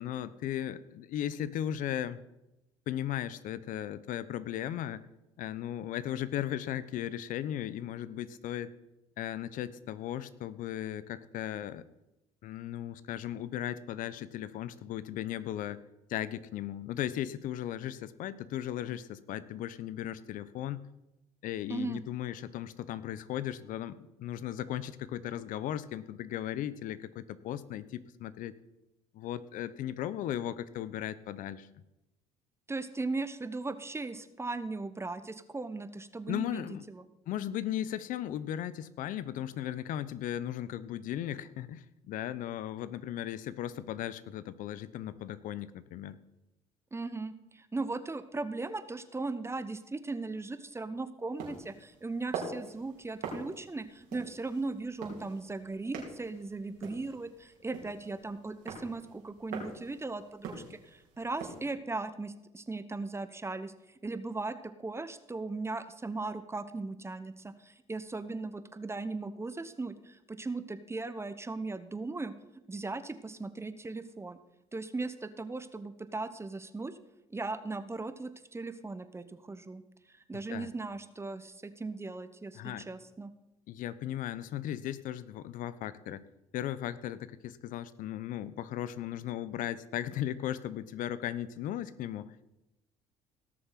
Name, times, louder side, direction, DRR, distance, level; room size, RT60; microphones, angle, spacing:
voice 1, 0.0-2.2 2.9-5.1 5.4-8.7 9.2-11.8 12.4-15.8 16.1-20.9 21.4-28.6 29.1-31.7 36.3-36.8 37.3-46.2 80.5-80.7 82.5-82.9 83.7-86.2 86.5-92.3, left 11 dB, 65° left, 16 dB, 0.9 m, -36 dB
voice 2, 21.7-22.0 32.7-37.0 46.9-72.3 72.7-74.4 74.7-77.0 77.3-79.8 80.1-83.3, right 3 dB, 15° right, 12 dB, 1.1 m, -38 dB
sound 1, 51.4-61.7, right 5 dB, 70° right, 3.9 m, -44 dB
17.5 x 6.8 x 5.9 m, 0.92 s
supercardioid pair, 70°, 15 cm